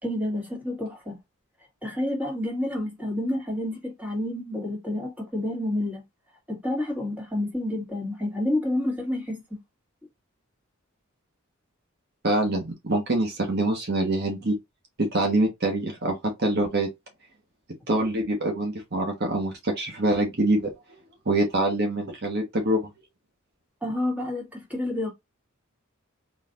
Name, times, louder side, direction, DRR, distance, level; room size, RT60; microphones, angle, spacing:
voice 1, 0.0-1.2 1.8-6.0 6.5-9.6 23.8-25.1, left 1 dB, 5° right, 2.0 m, -29 dB
voice 2, 12.2-14.5 15.1-16.9 17.9-20.6 21.3-22.9, right 2 dB, 55° right, 1.2 m, -25 dB
4.0 x 3.2 x 2.5 m
head